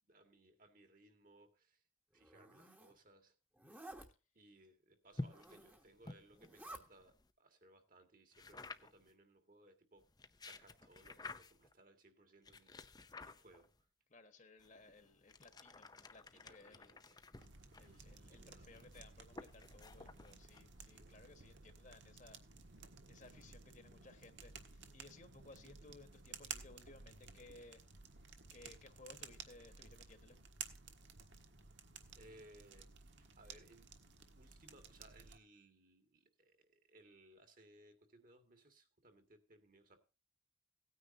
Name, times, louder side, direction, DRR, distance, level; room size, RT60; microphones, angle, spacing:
voice 1, 0.1-1.8 2.1-3.4 4.3-10.1 10.4-13.7 16.3-17.4 17.8-18.9 20.9-21.2 21.6-21.8 32.1-40.0, right 1 dB, 45° right, 2.0 m, -65 dB
Zipper (clothing), 2.2-2.9 3.6-4.1 5.2-5.9 6.3-6.8, right 1 dB, 10° right, 1.3 m, -54 dB
sound 1, 5.1-7.3 8.3-9.1 10.0-11.7 12.4-13.8 14.6-21.0, left 2 dB, 20° left, 0.6 m, -53 dB
voice 2, 14.1-16.9 17.7-22.4 23.1-27.8 28.5-30.4, left 2 dB, 40° left, 1.5 m, -60 dB
sound 2, 17.3-35.4, right 6 dB, 70° right, 1.5 m, -55 dB
17.5 x 9.6 x 2.7 m
head